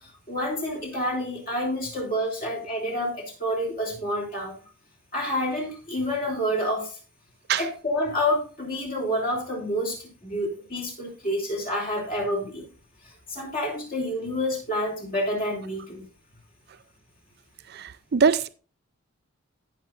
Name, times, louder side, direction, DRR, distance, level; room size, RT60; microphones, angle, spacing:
voice 1, 0.0-4.5 5.1-7.0 7.6-12.6 13.0-16.1, equal, 40° left, 3.1 m, -28 dB
voice 2, 17.7-18.5, right 6 dB, 45° right, 0.4 m, -22 dB
17.5 x 6.0 x 2.5 m
head